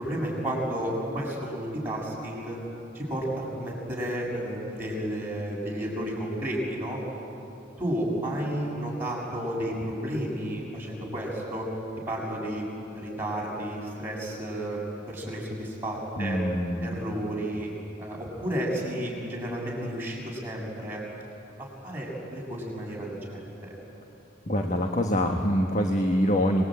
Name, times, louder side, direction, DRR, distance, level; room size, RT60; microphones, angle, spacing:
voice 1, 0.0-2.6 2.9-7.0 7.8-11.7 12.1-12.6 12.9-16.4 16.8-17.7 18.0-21.0 21.6-23.7, right 1 dB, 10° right, -4 dB, 6.6 m, -32 dB
voice 2, 16.2-16.9 24.5-26.7, equal, 40° left, 3 dB, 1.4 m, -25 dB
26.0 x 21.5 x 8.9 m, 2.9 s
head